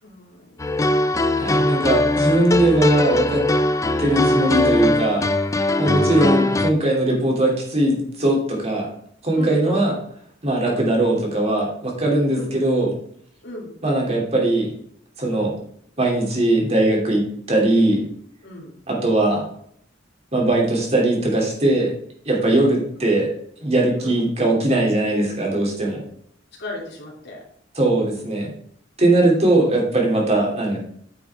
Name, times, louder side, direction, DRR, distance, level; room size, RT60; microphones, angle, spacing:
voice 1, 0.0-0.7 5.7-6.3 9.3-9.8 10.6-10.8 12.3-12.5 13.4-13.8 15.3-15.4 18.4-18.8 22.4-22.8 23.9-24.2 26.6-27.4 29.3-29.5, left 1 dB, 65° left, -2 dB, 2.8 m, -36 dB
sound 1, 0.6-6.7, left 2 dB, 15° left, 0.4 m, -20 dB
voice 2, 1.3-3.5 4.0-5.3 5.8-8.9 9.2-9.9 10.4-12.9 13.8-14.7 15.2-15.5 16.0-18.0 18.9-19.5 20.3-21.9 22.2-23.3 23.6-26.0 27.8-28.5 29.0-30.8, right 1 dB, 35° right, -1 dB, 2.8 m, -20 dB
9.1 x 6.0 x 3.5 m, 0.65 s
head